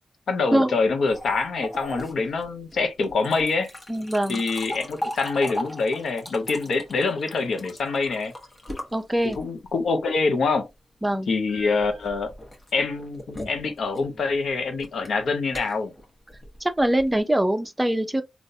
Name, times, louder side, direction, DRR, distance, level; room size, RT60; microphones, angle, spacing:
voice 1, 0.3-3.7 4.3-8.3 9.2-10.7 11.3-12.3 12.7-15.9, left 4 dB, 75° left, 0.8 m, -25 dB
sound 1, 1.1-9.7 11.5-17.2, left 1 dB, 30° left, 1.1 m, -38 dB
voice 2, 3.9-4.4 8.9-9.4 11.0-11.3 16.6-18.2, right 1 dB, 10° right, 0.5 m, -23 dB
3.8 x 2.4 x 2.6 m
cardioid pair, 75°, 0 cm